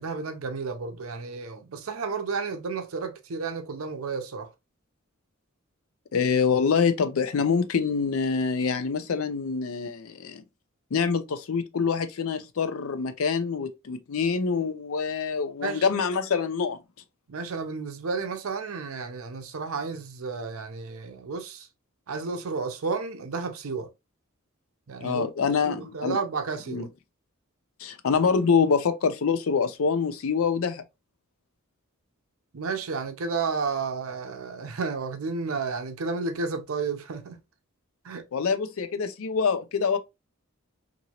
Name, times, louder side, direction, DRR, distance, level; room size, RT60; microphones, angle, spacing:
voice 1, 0.0-4.5 15.6-15.8 17.3-21.7 22.1-23.9 24.9-26.9 32.5-37.4 38.0-38.3, right 4 dB, 75° right, 0.6 m, -32 dB
voice 2, 6.1-10.4 10.9-16.8 25.0-26.2 26.7-26.9 27.8-30.8 38.3-40.0, left 5 dB, 75° left, 0.5 m, -25 dB
2.9 x 2.6 x 2.8 m
head